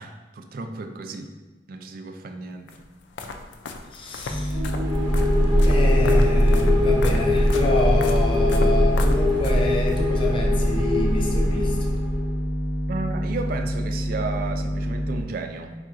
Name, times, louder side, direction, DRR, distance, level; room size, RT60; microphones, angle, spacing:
voice 1, 0.0-1.3 1.7-2.7 12.9-15.7, right 3 dB, 55° right, 6 dB, 0.3 m, -33 dB
sound 1, 2.7-10.0, left 3 dB, 90° left, 0.4 m, -36 dB
voice 2, 3.9-5.0 5.7-11.9, left 1 dB, 30° left, 0 dB, 0.5 m, -28 dB
sound 2, 4.3-15.2, equal, 25° right, 1.0 m, -27 dB
sound 3, 4.5-12.3, left 1 dB, 75° right, 0.8 m, -21 dB
4.2 x 3.6 x 2.5 m, 1.2 s
head